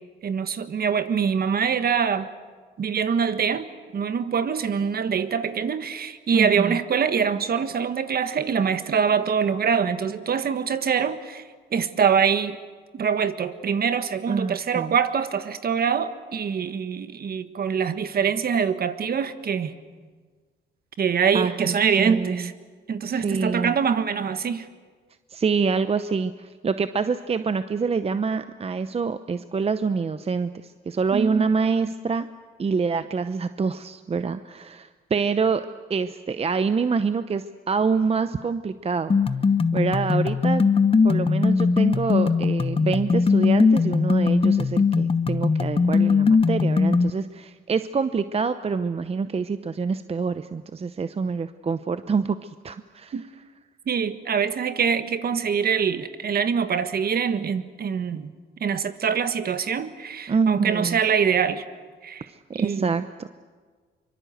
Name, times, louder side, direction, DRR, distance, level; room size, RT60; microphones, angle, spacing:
voice 1, 0.2-2.3 2.8-3.7 3.9-11.4 11.7-12.6 12.9-19.7 21.0-22.5 22.9-24.7 31.1-31.5 53.1-53.2 53.9-58.3 58.6-61.6 62.0-62.3 62.6-62.9, right 7 dB, 50° right, 11 dB, 1.5 m, -24 dB
voice 2, 6.3-6.8 14.3-14.9 21.3-22.5 23.1-23.7 25.3-32.3 32.6-39.1 39.7-40.7 41.0-53.2 60.3-61.0 62.3-63.3, right 5 dB, 30° right, 11 dB, 0.8 m, -26 dB
sound 1, 39.1-47.1, left 5 dB, 30° left, 1.0 m, -20 dB
24.5 x 24.0 x 8.0 m, 1.5 s
cardioid pair, 90°, 20 cm